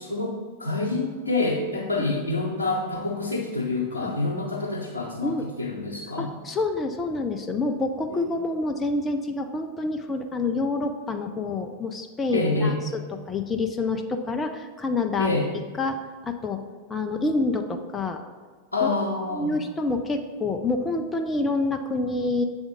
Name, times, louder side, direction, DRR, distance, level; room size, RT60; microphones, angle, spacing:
voice 1, 0.0-6.3 8.1-8.3 12.3-12.8 15.2-15.5 18.7-19.6, left 2 dB, 85° left, -4 dB, 0.9 m, -27 dB
voice 2, 6.2-15.3 15.8-16.0 16.2-16.6 16.9-18.2 18.8-18.9 19.3-22.4, left 3 dB, 15° left, 5 dB, 0.5 m, -27 dB
7.4 x 3.5 x 5.0 m, 1.5 s
figure-of-eight pair, 90°, 0 cm